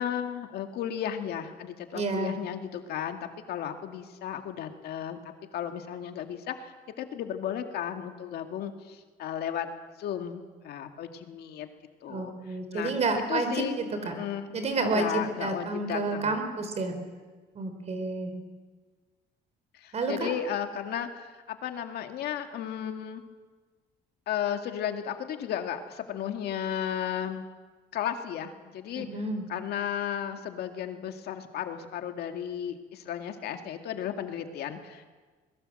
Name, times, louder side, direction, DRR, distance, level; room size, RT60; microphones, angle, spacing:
voice 1, 0.0-9.7 10.0-11.7 12.0-12.9 13.3-16.5 19.8-23.2 24.3-27.5 27.9-29.1 29.5-35.1, left 9 dB, 70° left, 6 dB, 2.1 m, -34 dB
voice 2, 1.9-2.3 12.1-13.5 13.8-14.1 14.5-16.9 17.5-18.3 19.9-20.3 29.0-29.5, right 3 dB, 40° right, 7 dB, 4.5 m, -30 dB
22.0 x 21.0 x 7.8 m, 1.4 s
cardioid pair, 110°, 17 cm